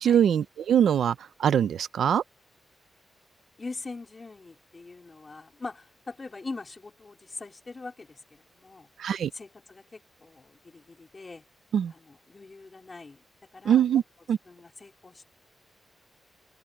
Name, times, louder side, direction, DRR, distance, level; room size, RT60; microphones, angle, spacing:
voice 1, 0.0-2.2 9.0-9.3 11.7-11.9 13.6-14.0 14.3-14.4, right 9 dB, 90° right, 0.7 m, -23 dB
voice 2, 3.6-8.9 9.3-11.4 11.9-13.2 13.5-14.0 14.5-15.3, left 3 dB, 30° left, 2.9 m, -42 dB
wide cardioid pair, 105°, 0 cm